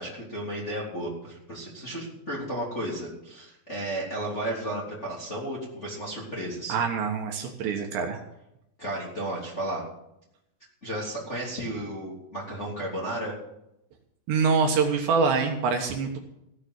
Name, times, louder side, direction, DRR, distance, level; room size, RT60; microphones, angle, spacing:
voice 1, 0.0-6.8 8.8-9.8 10.8-13.3, right 1 dB, 20° left, -5 dB, 2.5 m, -33 dB
voice 2, 6.7-8.2 14.3-16.2, right 5 dB, 70° right, 3 dB, 3.2 m, -25 dB
16.5 x 7.0 x 8.2 m, 0.83 s
omnidirectional pair, 5.7 m